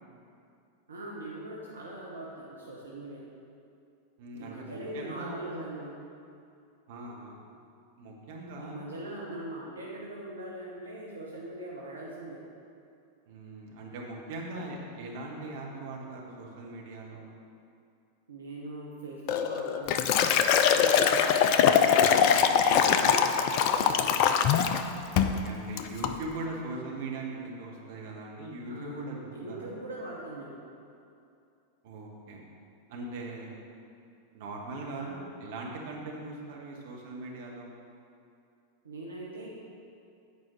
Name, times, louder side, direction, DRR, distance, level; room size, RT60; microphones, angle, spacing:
voice 1, 0.9-3.2 4.3-5.9 8.6-12.4 18.3-21.5 22.7-23.2 23.5-24.2 28.7-29.0 29.3-30.6 34.9-35.2 38.8-39.5, right 1 dB, 70° right, -4 dB, 1.1 m, -41 dB
voice 2, 4.2-5.5 6.9-7.4 8.0-8.8 13.3-17.2 22.3-22.6 25.1-29.7 31.8-32.4 32.9-33.5 34.3-37.7, right 2 dB, 50° right, -2 dB, 1.4 m, -40 dB
Liquid, 19.3-24.8 25.2-25.4 25.8-26.1, left 7 dB, 45° left, 0.4 m, -23 dB
8.4 x 4.9 x 6.1 m, 2.5 s
figure-of-eight pair, 90°, 0 cm